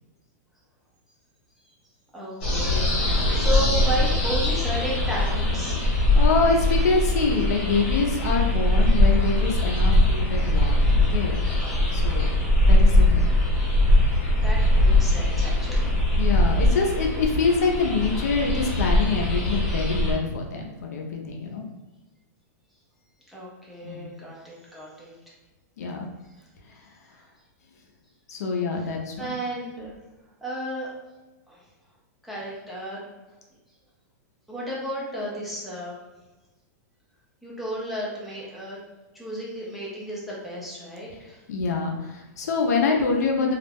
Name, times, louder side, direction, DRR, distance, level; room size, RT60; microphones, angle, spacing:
voice 1, 2.1-5.8 14.4-15.9 23.3-25.1 28.8-28.9 29.2-29.9 30.4-30.9 31.5-31.6 32.2-33.1 34.5-36.0 37.4-38.8 39.1-41.4, right 1 dB, ahead, -7 dB, 0.4 m, -33 dB
sound 1, 2.4-20.1, left 1 dB, 35° left, 0.9 m, -21 dB
voice 2, 5.8-11.4 11.9-12.3 12.7-13.3 16.2-21.7 23.8-24.1 25.8-26.1 28.3-29.3 41.5-43.5, left 4 dB, 65° left, 1 dB, 0.5 m, -25 dB
2.3 x 2.0 x 3.3 m, 1.1 s
supercardioid pair, 180°, 9 cm